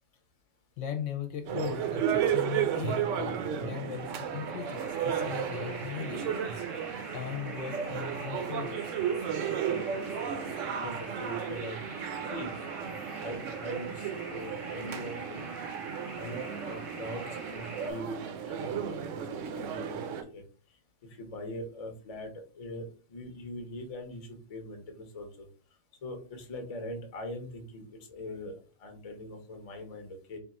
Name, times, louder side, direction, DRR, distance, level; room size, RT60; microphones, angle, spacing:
voice 1, 0.8-6.3 7.1-8.9 10.1-10.2, left 9 dB, 65° left, 5 dB, 0.9 m, -38 dB
sound 1, 1.4-20.2, right 8 dB, 70° right, 0.9 m, -34 dB
sound 2, 3.9-17.9, right 2 dB, 30° right, 0.7 m, -45 dB
voice 2, 10.8-11.8 12.3-12.5 12.8-12.9 13.2-15.6 16.1-17.2 17.5-20.4 21.2-25.5 26.0-30.4, left 1 dB, 35° left, 5 dB, 0.6 m, -42 dB
3.6 x 2.4 x 4.1 m, 0.39 s
omnidirectional pair, 1.4 m